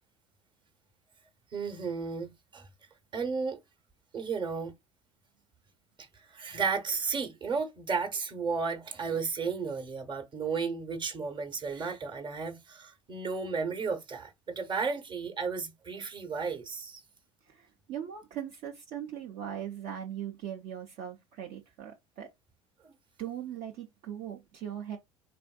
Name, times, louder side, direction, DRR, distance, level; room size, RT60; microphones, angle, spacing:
voice 1, 1.5-2.7 3.1-3.6 4.1-4.7 6.1-17.0 22.8-22.9, right 5 dB, 30° right, 1.0 m, -33 dB
voice 2, 17.5-22.3 23.2-25.0, right 10 dB, 50° right, 0.6 m, -40 dB
3.6 x 2.5 x 2.3 m
figure-of-eight pair, 70°, 16 cm